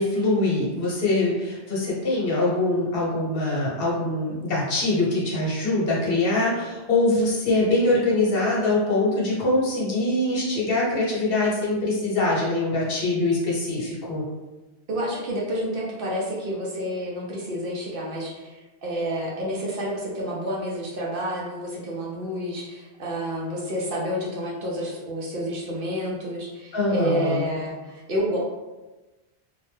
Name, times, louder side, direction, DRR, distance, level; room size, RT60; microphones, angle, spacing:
voice 1, 0.0-14.2 26.7-27.4, left 2 dB, 60° left, -5 dB, 1.0 m, -23 dB
voice 2, 14.9-28.4, equal, 60° right, -4 dB, 0.8 m, -29 dB
2.7 x 2.1 x 3.1 m, 1.1 s
omnidirectional pair, 1.1 m